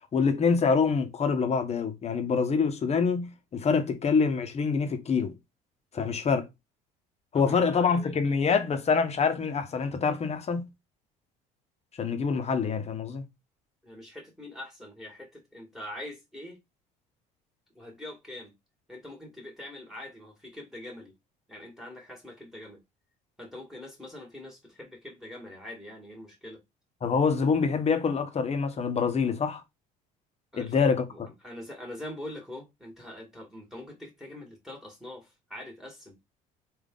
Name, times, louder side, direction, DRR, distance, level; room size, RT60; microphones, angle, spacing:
voice 1, 0.1-5.3 5.9-6.5 7.3-10.7 12.0-13.2 27.0-29.6 30.5-31.3, left 5 dB, 40° left, 1.0 m, -26 dB
voice 2, 7.3-8.1 13.8-16.6 17.8-18.5 18.9-21.1 21.5-22.8 23.4-26.6 30.5-36.2, left 1 dB, ahead, 1.9 m, -43 dB
3.7 x 2.7 x 3.7 m
supercardioid pair, 80°, 17 cm